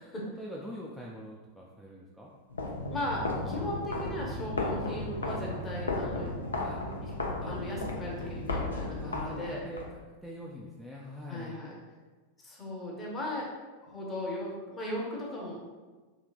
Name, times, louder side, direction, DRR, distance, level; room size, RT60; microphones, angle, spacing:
voice 1, 0.4-2.3 6.6-6.9 7.4-7.6 9.0-11.6, equal, ahead, -5 dB, 0.3 m, -44 dB
sound 1, 2.5-9.9, left 2 dB, 75° left, 0.5 m, -34 dB
voice 2, 2.9-6.3 7.0-7.1 7.5-9.6 11.3-11.8 12.4-13.5 13.9-15.6, left 1 dB, 20° left, -3 dB, 0.8 m, -37 dB
3.2 x 2.8 x 2.4 m, 1.3 s
figure-of-eight pair, 90°, 0 cm